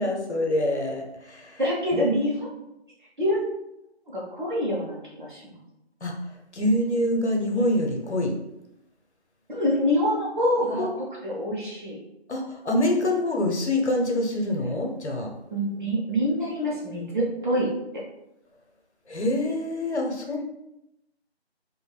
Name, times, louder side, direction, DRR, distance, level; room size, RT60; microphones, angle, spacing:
voice 1, 0.0-1.6 1.9-2.0 6.0-6.1 6.5-8.3 10.8-10.9 12.3-15.3 19.1-20.4, left 1 dB, 85° left, 1 dB, 0.8 m, -25 dB
voice 2, 1.6-2.5 3.2-3.4 4.1-5.4 9.5-10.9 11.2-12.0 15.5-17.7, equal, 45° right, -5 dB, 0.9 m, -25 dB
3.3 x 2.5 x 2.3 m, 0.87 s
figure-of-eight pair, 160°, 33 cm